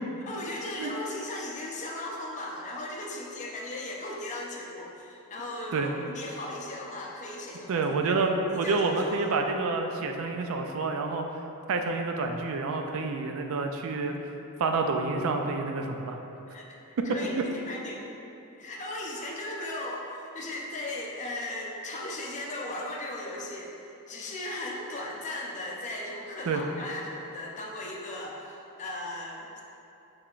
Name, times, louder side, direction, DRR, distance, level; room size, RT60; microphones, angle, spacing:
voice 1, 0.3-7.8 8.1-9.3 16.5-16.7 17.0-18.0 18.6-23.7 24.1-29.6, left 1 dB, 35° left, -2 dB, 0.5 m, -37 dB
voice 2, 7.7-11.3 11.7-14.1 14.6-16.2 17.1-17.2 26.5-26.6, right 3 dB, 65° right, 4 dB, 0.4 m, -28 dB
5.4 x 3.3 x 2.4 m, 2.8 s
head